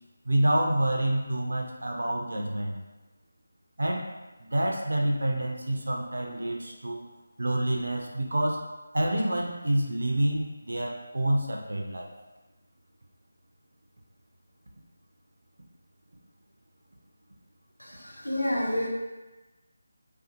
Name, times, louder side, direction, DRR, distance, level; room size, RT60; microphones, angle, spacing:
voice 1, 0.3-2.7 3.8-4.1 4.4-7.1 7.4-8.6 8.9-12.1, right 1 dB, 65° right, 0 dB, 0.4 m, -27 dB
voice 2, 17.8-18.9, left 1 dB, 90° left, -4 dB, 0.8 m, -29 dB
2.5 x 2.3 x 2.5 m, 1.1 s
figure-of-eight pair, 160°, 0 cm